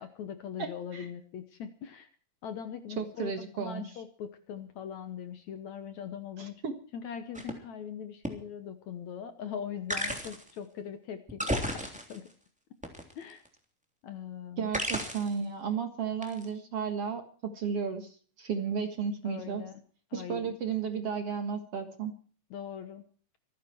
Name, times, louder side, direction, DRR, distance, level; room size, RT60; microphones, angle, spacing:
voice 1, 0.0-2.1 2.4-6.5 6.9-12.2 13.2-13.4 14.0-14.7 19.2-19.7 20.1-20.6 22.5-23.0, left 8 dB, 65° left, 10 dB, 2.1 m, -41 dB
voice 2, 0.6-1.1 3.0-4.0 6.4-6.8 14.6-19.6 20.1-22.1, right 6 dB, 50° right, 7 dB, 2.2 m, -34 dB
sound 1, 7.3-7.5 8.2-8.3 9.9-10.5 11.3-12.3 12.8-13.5 14.7-15.4 16.2-16.4, equal, ahead, 2.6 m, -33 dB
25.0 x 10.5 x 4.6 m, 0.42 s
omnidirectional pair, 4.2 m